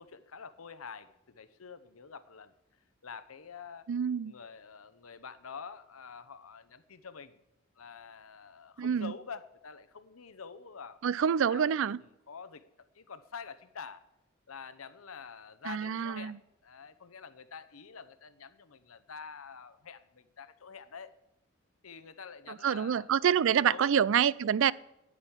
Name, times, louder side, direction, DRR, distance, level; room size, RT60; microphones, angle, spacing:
voice 1, 0.0-2.5 3.0-3.9 4.2-7.4 7.8-11.7 12.3-12.6 12.9-14.0 14.5-16.4 16.6-21.1 21.8-23.1 23.5-23.9, left 6 dB, 80° left, 0.8 m, -47 dB
voice 2, 3.9-4.3 8.8-9.1 11.0-12.0 15.7-16.4 22.6-24.7, right 8 dB, 65° right, 0.4 m, -27 dB
10.0 x 9.7 x 8.8 m
head